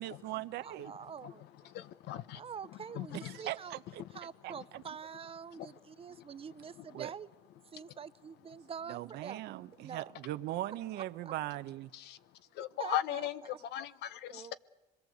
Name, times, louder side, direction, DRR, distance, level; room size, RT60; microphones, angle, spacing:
voice 1, 0.0-0.9 3.1-4.0 4.4-4.8 6.9-7.1 8.9-11.9, right 15 dB, 80° right, 0.9 m, -40 dB
voice 2, 0.6-1.4 2.3-3.7 4.1-7.3 7.7-9.4 9.8-10.1 10.9-11.3 12.8-13.6 14.3-14.5, right 7 dB, 35° right, 0.8 m, -45 dB
voice 3, 1.6-2.4 2.9-3.4 4.5-4.6 5.5-5.7 6.0-6.1 6.8-7.0 11.9-12.2 12.5-14.5, left 12 dB, 80° left, 1.0 m, -38 dB
25.0 x 22.0 x 8.0 m
cardioid pair, 110°, 17 cm